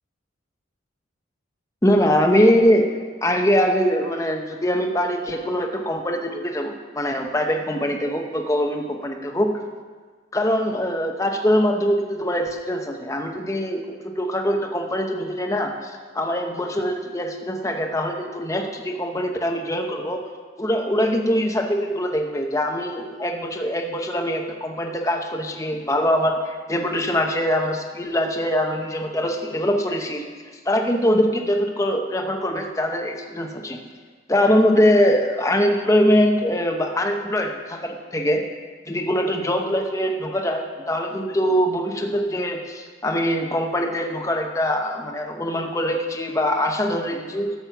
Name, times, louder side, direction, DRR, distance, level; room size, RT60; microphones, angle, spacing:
voice 1, 1.8-2.9 3.2-9.5 10.3-20.2 20.6-30.3 30.7-33.8 34.3-38.4 38.9-47.5, equal, 15° left, 2 dB, 0.8 m, -22 dB
12.5 x 7.6 x 5.9 m, 1.5 s
head